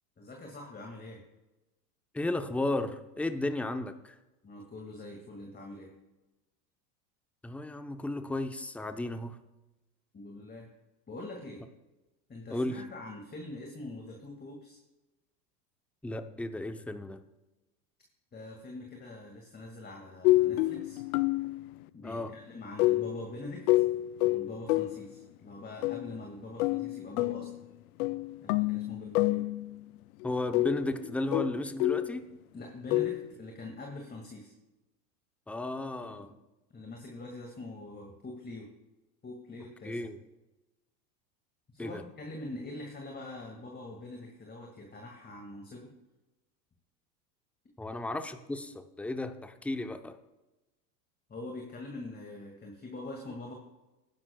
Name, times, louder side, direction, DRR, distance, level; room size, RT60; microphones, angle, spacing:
voice 1, 0.2-1.2 4.4-5.9 10.1-10.7 11.1-11.6 12.3-14.8 18.3-21.0 21.9-23.8 24.2-27.5 28.4-29.4 32.5-34.5 36.0-36.3 36.7-38.7 39.2-40.0 41.7-45.9 47.9-48.0 51.3-53.5, left 2 dB, 20° left, 1 dB, 2.1 m, -44 dB
voice 2, 2.1-4.2 7.4-9.4 12.5-12.8 16.0-17.2 22.0-22.3 30.2-32.3 35.5-36.3 39.8-40.2 41.8-42.0 47.8-50.2, left 2 dB, 5° left, 9 dB, 0.7 m, -34 dB
sound 1, 20.2-21.7 22.8-25.1 25.8-26.2 26.6-27.6 28.0-29.8 30.2-32.2 32.9-33.3, left 18 dB, 60° left, 0.6 m, -28 dB
19.5 x 10.5 x 2.3 m, 1.0 s
hypercardioid pair, 90°, 49 cm